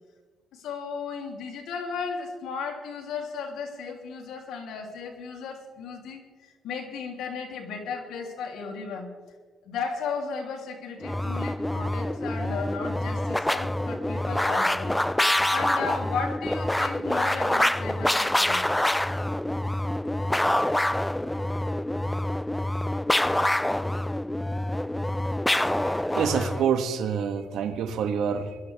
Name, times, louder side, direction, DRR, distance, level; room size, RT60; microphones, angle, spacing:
voice 1, 0.5-9.1 9.6-14.9 15.5-18.7, left 5 dB, 80° left, 0 dB, 2.9 m, -35 dB
sound 1, 11.0-26.7, left 1 dB, 5° left, 0.3 m, -26 dB
voice 2, 25.6-28.6, right 7 dB, 80° right, 8 dB, 1.3 m, -27 dB
21.0 x 12.5 x 3.4 m, 1.4 s
cardioid pair, 90°, 0 cm